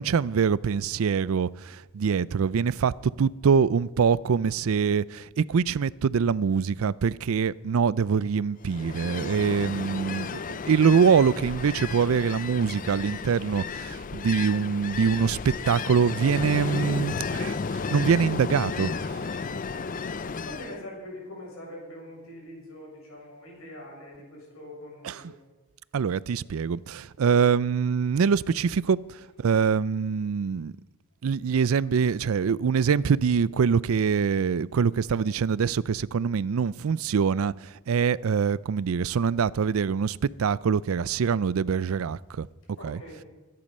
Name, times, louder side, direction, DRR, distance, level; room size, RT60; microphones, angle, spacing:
voice 1, 0.0-2.9 3.2-19.1 25.0-25.3 25.9-30.7 31.2-42.5 42.8-43.0, right 6 dB, 85° right, 0.4 m, -24 dB
Ocean, 8.6-20.8, left 5 dB, 40° left, 0.5 m, -33 dB
voice 2, 9.9-10.6 20.4-25.3 42.8-43.2, left 1 dB, 90° left, 7.3 m, -43 dB
23.0 x 10.5 x 5.4 m
head